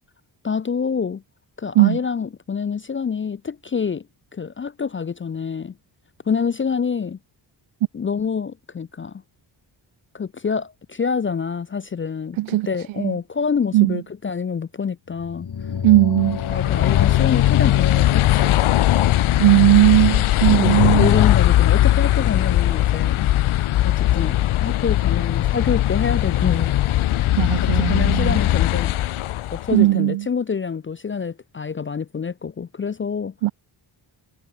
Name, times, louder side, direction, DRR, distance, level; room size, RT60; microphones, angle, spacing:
voice 1, 0.4-1.2 1.6-4.0 4.3-5.7 6.3-7.2 7.9-9.2 10.1-15.5 16.5-18.7 20.5-23.3 23.8-26.7 27.8-28.9 29.5-33.3, left 6 dB, 25° left, 0.4 m, -26 dB
voice 2, 12.4-12.7 13.0-13.1 13.7-14.0 15.8-16.4 19.4-21.1 27.4-28.4 29.7-30.3 33.4-33.5, right 16 dB, 70° right, 0.5 m, -17 dB
sound 1, 15.1-19.7, left 7 dB, 50° left, 2.3 m, -32 dB
sound 2, 16.3-29.8, left 14 dB, 75° left, 0.8 m, -19 dB
cardioid pair, 75°, 49 cm